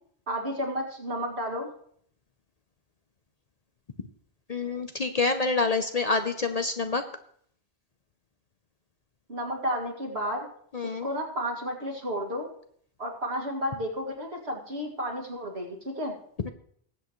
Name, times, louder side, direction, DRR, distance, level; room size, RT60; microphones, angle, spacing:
voice 1, 0.3-1.7 9.3-10.5 10.8-12.5 13.0-16.1, equal, 70° right, 1 dB, 2.4 m, -32 dB
voice 2, 4.5-7.0 10.7-11.1 16.4-16.5, left 3 dB, 45° left, 8 dB, 0.7 m, -27 dB
20.5 x 8.1 x 3.1 m, 0.63 s
omnidirectional pair, 1.1 m